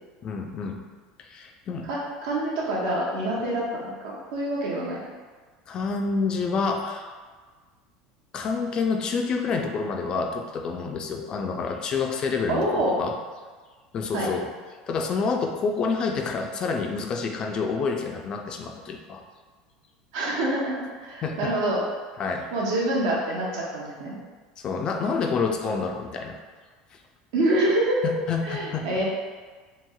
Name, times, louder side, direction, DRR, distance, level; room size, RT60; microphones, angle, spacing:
voice 1, 0.2-0.8 1.2-1.9 5.7-7.1 8.3-13.1 13.9-14.5 14.9-19.2 21.2-21.5 22.2-22.5 24.6-26.4 28.0-28.8, left 4 dB, 35° left, 3 dB, 0.3 m, -28 dB
voice 2, 1.9-5.0 12.5-12.9 14.1-14.3 20.1-21.8 22.5-24.2 27.3-28.1 28.5-29.0, right 1 dB, 75° right, -4 dB, 0.7 m, -26 dB
3.0 x 2.8 x 2.3 m, 1.4 s
supercardioid pair, 130°, 2 cm